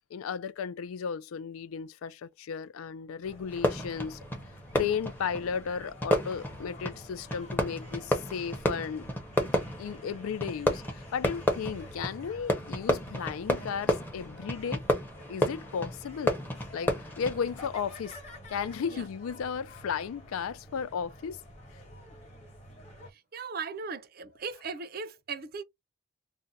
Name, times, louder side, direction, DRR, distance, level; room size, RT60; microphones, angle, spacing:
voice 1, 0.1-4.2 4.7-9.1 9.8-14.8 15.3-16.4 16.7-18.2 18.5-21.4, left 6 dB, 80° left, 0.3 m, -34 dB
sound 1, 3.2-23.1, equal, 30° left, 1.1 m, -49 dB
Fireworks, 3.5-17.7, left 1 dB, 10° left, 0.7 m, -32 dB
voice 2, 23.1-25.6, right 5 dB, 45° right, 0.5 m, -38 dB
2.5 x 2.2 x 4.0 m
head